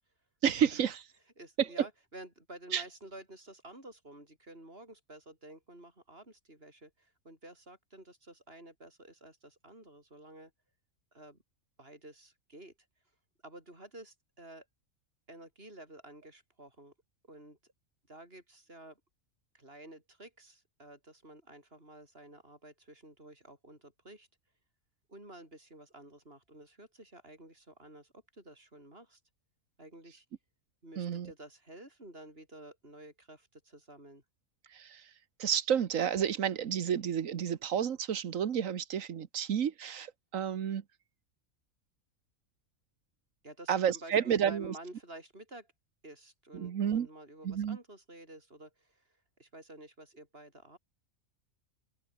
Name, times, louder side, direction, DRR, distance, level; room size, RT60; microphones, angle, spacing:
voice 1, 0.4-1.0 1.6-1.7 2.7-2.8 31.0-31.3 34.7-35.0 35.4-40.8 43.7-44.7 46.5-47.1 47.4-47.8, right 8 dB, 75° right, 1.4 m, -30 dB
voice 2, 1.4-10.5 11.1-11.4 11.8-12.7 13.4-14.7 15.3-16.9 17.3-17.6 18.1-19.0 19.5-24.3 25.1-29.2 29.8-30.3 30.8-34.2 43.4-45.7 46.0-50.8, right 1 dB, 45° right, 8.1 m, -51 dB
omnidirectional pair, 1.4 m